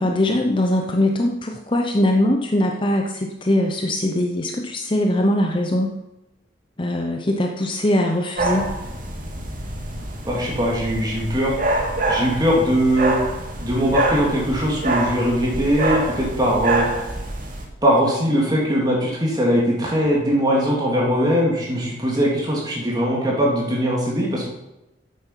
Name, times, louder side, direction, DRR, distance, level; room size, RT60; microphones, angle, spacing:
voice 1, 0.0-6.0 6.8-8.7, left 1 dB, 25° left, 3 dB, 0.8 m, -21 dB
sound 1, 8.4-17.6, right 2 dB, 50° right, 2.0 m, -26 dB
voice 2, 10.2-11.5 12.1-13.2 13.6-16.9 17.8-24.5, equal, 20° right, -3 dB, 3.0 m, -20 dB
9.7 x 8.1 x 5.8 m, 0.95 s
head